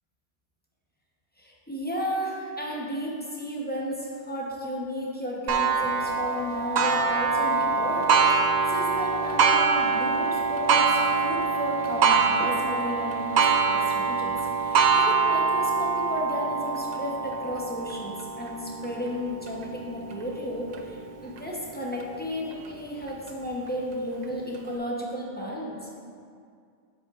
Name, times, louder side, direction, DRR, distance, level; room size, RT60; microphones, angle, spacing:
voice 1, 1.4-8.1 8.4-26.0, equal, 10° left, -4 dB, 0.8 m, -33 dB
Clock, 5.5-20.8 21.4-21.5 22.0-22.1 23.1-23.2, right 5 dB, 60° right, 0.4 m, -24 dB
7.8 x 7.4 x 2.5 m, 2.2 s
omnidirectional pair, 1.2 m